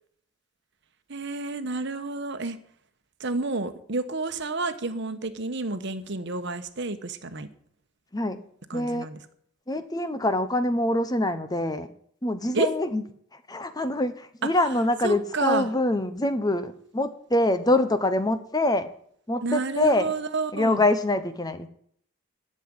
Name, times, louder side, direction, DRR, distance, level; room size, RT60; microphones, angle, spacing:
voice 1, 1.1-2.6 3.2-7.5 8.7-9.2 12.5-12.7 15.0-15.7 19.4-20.8, right 3 dB, 55° right, 10 dB, 1.1 m, -30 dB
voice 2, 8.7-9.1 9.7-11.9 12.2-13.0 13.3-18.9 19.3-20.1 20.5-21.7, left 1 dB, 20° left, 10 dB, 0.9 m, -25 dB
12.5 x 7.5 x 9.7 m, 0.65 s
head